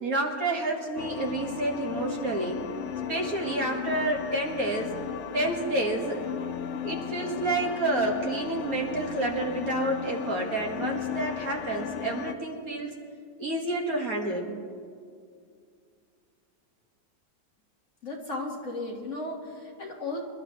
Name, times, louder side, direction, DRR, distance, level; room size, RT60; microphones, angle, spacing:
voice 1, 0.0-2.6 3.1-4.9 5.3-6.3 6.8-12.9 13.4-14.5, right 2 dB, 55° right, 0 dB, 2.0 m, -29 dB
sound 1, 1.0-12.3, left 8 dB, 70° left, 0.6 m, -35 dB
voice 2, 18.0-20.2, left 2 dB, 45° left, 0 dB, 1.7 m, -35 dB
26.5 x 12.5 x 3.1 m, 2.2 s
omnidirectional pair, 1.9 m